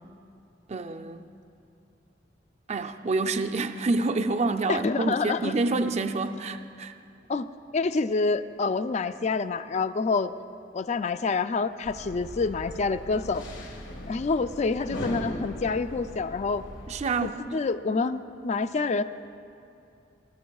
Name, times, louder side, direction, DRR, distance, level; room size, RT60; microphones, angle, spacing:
voice 1, 0.7-1.3 2.7-6.9 16.9-17.6, right 3 dB, 35° right, 8 dB, 0.4 m, -28 dB
voice 2, 4.7-5.5 7.3-7.5 7.7-10.3 10.7-13.4 14.1-16.6 17.2-19.0, left 4 dB, 40° left, 11 dB, 0.4 m, -27 dB
sound 1, 11.8-17.1, left 1 dB, 85° left, 1.7 m, -39 dB
22.0 x 12.5 x 2.4 m, 2.7 s
head